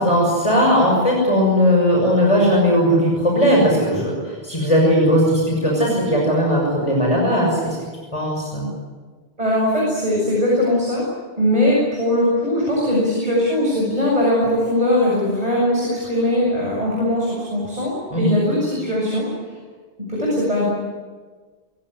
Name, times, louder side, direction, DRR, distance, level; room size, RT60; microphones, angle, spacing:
voice 1, 0.0-7.8 8.1-8.7 18.1-18.3, equal, 30° left, -2 dB, 6.4 m, -18 dB
voice 2, 9.4-11.0 11.4-19.3 20.1-20.7, left 1 dB, 35° right, -4 dB, 7.6 m, -20 dB
25.5 x 17.0 x 9.9 m, 1.4 s
omnidirectional pair, 1.1 m